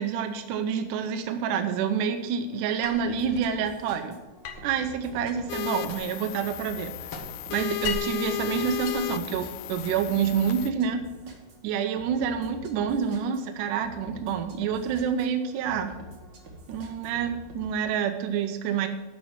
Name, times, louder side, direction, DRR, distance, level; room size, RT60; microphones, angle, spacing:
voice 1, 0.0-4.2 4.6-7.1 7.5-11.0 11.6-16.0 16.7-18.9, right 7 dB, 80° right, 7 dB, 2.2 m, -28 dB
sound 1, 2.8-3.5 4.4-6.3 6.6-8.2 8.7-9.8, left 6 dB, 60° left, 1.7 m, -38 dB
sound 2, 3.0-17.7, equal, 50° right, 1.5 m, -46 dB
sound 3, 5.5-10.7, left 16 dB, 80° left, 2.0 m, -34 dB
12.0 x 4.5 x 7.2 m, 1.1 s
omnidirectional pair, 3.6 m